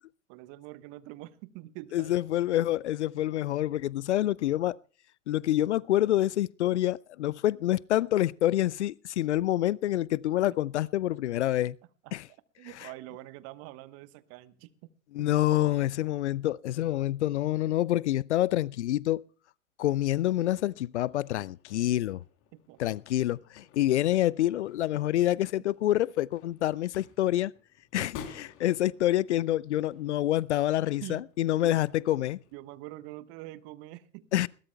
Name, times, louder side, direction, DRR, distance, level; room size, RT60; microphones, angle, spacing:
voice 1, 0.3-2.2 12.0-12.1 12.6-14.7 15.2-15.3 22.5-22.8 28.0-28.1 31.0-31.2 31.6-31.8 32.5-34.3, right 17 dB, 35° right, 1.2 m, -45 dB
voice 2, 1.9-4.8 5.3-11.8 12.1-12.2 12.8-12.9 15.1-19.2 19.8-22.2 22.8-27.5 27.9-32.4 34.3-34.5, left 14 dB, 60° left, 0.5 m, -27 dB
sound 1, 20.1-32.6, left 7 dB, 35° left, 3.3 m, -53 dB
21.0 x 18.0 x 2.3 m
figure-of-eight pair, 100°, 41 cm